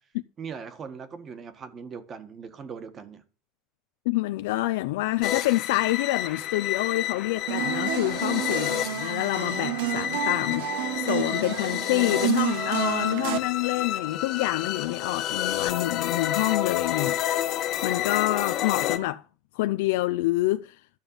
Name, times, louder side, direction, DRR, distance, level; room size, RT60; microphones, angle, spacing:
voice 1, 0.4-3.2, right 6 dB, 30° right, 1.6 m, -40 dB
voice 2, 4.1-10.7 10.9-19.2 19.5-20.8, left 18 dB, 80° left, 0.5 m, -27 dB
sound 1, 5.2-19.0, left 12 dB, 45° left, 1.3 m, -30 dB
sound 2, 7.5-13.4, right 12 dB, 80° right, 1.5 m, -30 dB
12.0 x 5.2 x 8.8 m
supercardioid pair, 145°, 0 cm